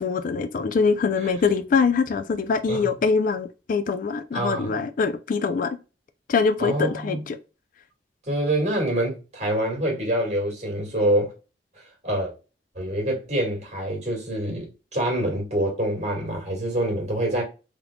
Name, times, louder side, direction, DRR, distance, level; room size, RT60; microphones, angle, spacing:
voice 1, 0.0-5.8 6.3-7.4, left 5 dB, 50° left, 0.4 m, -23 dB
voice 2, 4.3-4.7 6.6-7.2 8.3-11.3 11.8-12.3 12.8-17.4, right 1 dB, 40° right, 1.9 m, -26 dB
3.6 x 3.5 x 2.2 m
head